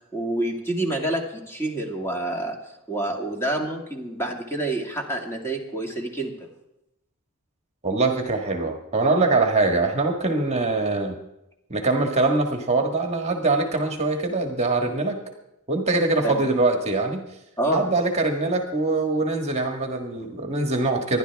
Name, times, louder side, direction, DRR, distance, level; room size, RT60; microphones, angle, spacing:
voice 1, 0.1-2.6 2.9-6.3 16.2-16.5 17.6-17.9, right 1 dB, 10° left, 0 dB, 2.1 m, -27 dB
voice 2, 7.8-11.2 11.7-15.2 15.7-17.2 17.7-21.2, right 3 dB, 30° right, 3 dB, 1.6 m, -23 dB
26.5 x 11.5 x 3.5 m, 0.87 s
head